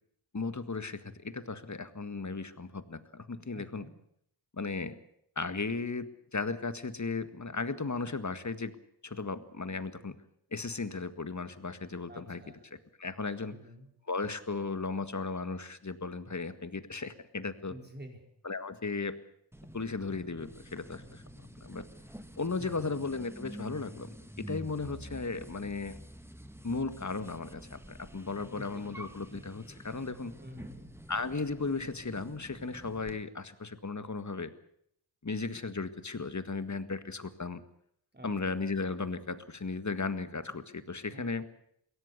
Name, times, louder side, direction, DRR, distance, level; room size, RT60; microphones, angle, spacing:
voice 1, 0.3-3.9 4.6-5.0 5.4-8.8 9.0-10.2 10.5-13.6 14.1-17.7 18.4-19.2 19.7-21.8 22.4-26.0 26.6-30.3 31.1-34.5 35.2-37.6 38.2-41.5, left 4 dB, 40° left, 12 dB, 1.8 m, -36 dB
voice 2, 3.5-3.9 12.1-12.6 13.5-13.9 17.7-18.3 22.6-22.9 28.5-28.8 30.4-30.8 38.1-38.3 41.1-41.4, equal, 20° right, 3 dB, 4.8 m, -48 dB
sound 1, 19.5-33.2, equal, 5° right, 1.9 m, -48 dB
22.5 x 17.0 x 8.2 m, 0.70 s
cardioid pair, 50°, 45 cm